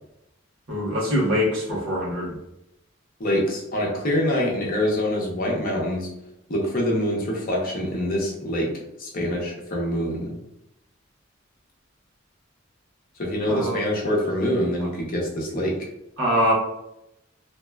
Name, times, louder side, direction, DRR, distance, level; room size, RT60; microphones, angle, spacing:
voice 1, 0.7-2.4 13.5-13.8 16.2-16.5, equal, 80° right, -5 dB, 1.2 m, -23 dB
voice 2, 3.2-6.1 6.5-8.7 9.0-10.3 13.2-15.7, equal, 45° left, -2 dB, 0.7 m, -25 dB
2.8 x 2.2 x 2.2 m, 0.84 s
head